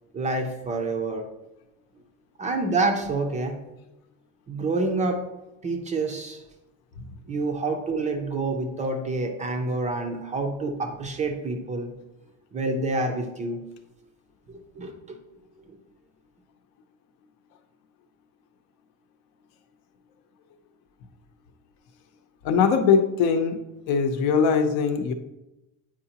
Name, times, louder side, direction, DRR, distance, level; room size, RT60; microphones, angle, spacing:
voice 1, 0.1-1.3 2.4-3.6 4.5-5.2 5.6-6.4 7.3-11.9 12.5-13.6 14.5-15.2, right 3 dB, 20° right, 3 dB, 0.4 m, -27 dB
voice 2, 22.4-23.6 23.9-25.1, left 6 dB, 65° left, 7 dB, 0.8 m, -21 dB
8.9 x 4.8 x 2.9 m, 0.97 s
cardioid pair, 175°, 38 cm